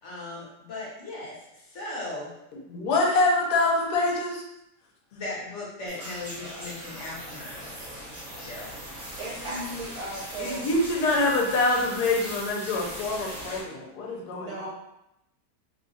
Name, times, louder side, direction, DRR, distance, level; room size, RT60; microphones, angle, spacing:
voice 1, 0.0-2.3 5.1-7.9 8.4-8.8, left 2 dB, 50° left, -5 dB, 1.3 m, -38 dB
voice 2, 2.7-4.4 9.4-9.7 10.4-14.7, left 2 dB, 75° left, -1 dB, 1.3 m, -25 dB
sound 1, 5.9-13.6, equal, 30° right, 1.2 m, -39 dB
voice 3, 9.2-10.7 14.3-14.7, right 2 dB, 60° right, -5 dB, 1.3 m, -37 dB
3.1 x 2.3 x 4.0 m, 0.86 s
omnidirectional pair, 1.7 m